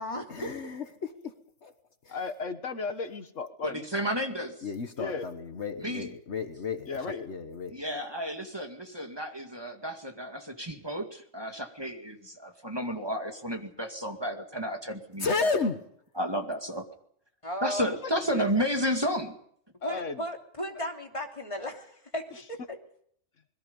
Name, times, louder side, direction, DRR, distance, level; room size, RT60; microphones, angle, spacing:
voice 1, 0.3-1.3 1.6-1.7 2.0-2.2 4.6-7.8 15.2-15.8, left 4 dB, 65° left, 8 dB, 1.6 m, -32 dB
voice 2, 2.1-3.9 5.0-5.3 6.9-7.3 18.0-18.1 19.8-20.2, left 4 dB, 80° left, 9 dB, 1.8 m, -35 dB
voice 3, 3.6-4.6 5.8-6.1 7.7-15.5 16.2-16.8 17.6-19.4, equal, 20° right, 4 dB, 2.2 m, -32 dB
voice 4, 17.4-17.9 18.2-18.5 19.8-22.8, left 1 dB, 25° left, 2 dB, 3.1 m, -36 dB
27.0 x 21.5 x 5.4 m, 0.67 s
omnidirectional pair, 1.3 m